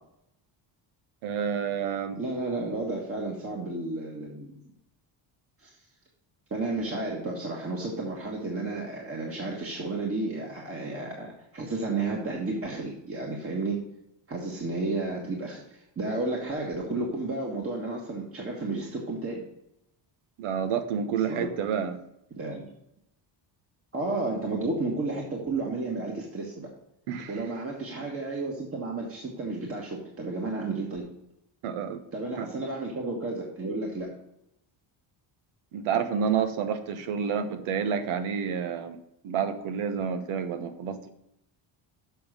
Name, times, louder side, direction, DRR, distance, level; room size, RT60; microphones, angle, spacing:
voice 1, 1.2-2.2 20.4-22.0 27.1-27.3 31.6-32.0 32.4-32.5 35.7-39.0 39.2-41.1, right 7 dB, 85° right, 9 dB, 1.2 m, -29 dB
voice 2, 2.2-4.6 5.6-5.7 6.5-13.8 14.3-19.4 21.3-21.5 22.4-22.7 23.9-26.7 27.3-31.0 32.1-34.1, right 2 dB, 25° right, -2 dB, 1.5 m, -32 dB
7.0 x 5.5 x 6.5 m, 0.82 s
cardioid pair, 140°, 48 cm